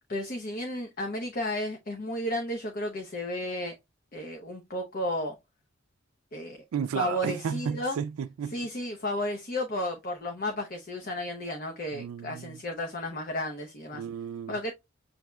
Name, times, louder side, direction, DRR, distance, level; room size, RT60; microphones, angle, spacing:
voice 1, 0.1-3.8 4.1-5.4 6.3-6.6 6.9-8.0 8.5-14.0 14.5-14.7, left 1 dB, 45° left, 0.7 m, -33 dB
voice 2, 6.7-8.5 11.9-12.6 13.9-14.6, right 7 dB, 85° right, 0.3 m, -33 dB
7.2 x 2.7 x 2.2 m
head